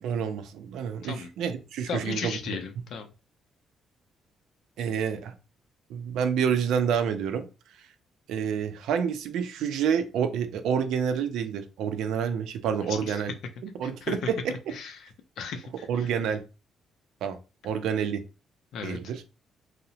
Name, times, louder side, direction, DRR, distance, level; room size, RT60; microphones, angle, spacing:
voice 1, 0.0-2.4 4.8-5.3 5.9-7.4 8.3-13.3 13.8-14.5 15.9-16.4 17.2-17.4 17.6-18.2 18.8-19.2, right 7 dB, 85° right, 0.4 m, -28 dB
voice 2, 1.9-3.1 12.9-13.2 13.8-14.2 14.7-15.1 15.4-16.1 18.7-19.0, left 6 dB, 70° left, 0.4 m, -36 dB
2.8 x 2.0 x 2.6 m
cardioid pair, 150°, 0 cm